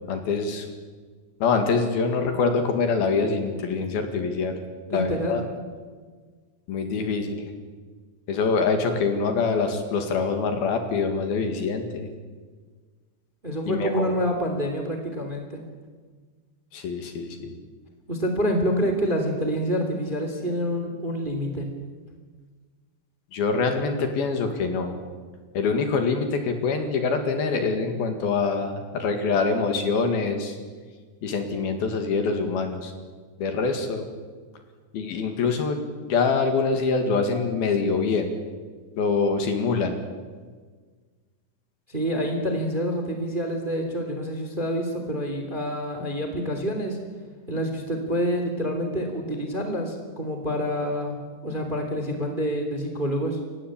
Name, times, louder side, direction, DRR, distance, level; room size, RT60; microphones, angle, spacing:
voice 1, 0.1-0.7 1.4-4.6 4.9-5.4 6.7-7.5 8.3-12.1 13.7-14.0 16.7-17.5 23.3-25.0 25.5-30.6 31.2-32.9 33.4-34.1 34.9-38.3 39.0-40.0, left 4 dB, 60° left, 6 dB, 3.6 m, -25 dB
voice 2, 4.9-5.4 13.4-15.6 18.1-21.7 41.9-47.0 47.5-51.2 51.4-53.4, equal, 15° right, 4 dB, 2.5 m, -27 dB
29.0 x 16.0 x 8.8 m, 1.5 s
omnidirectional pair, 5.1 m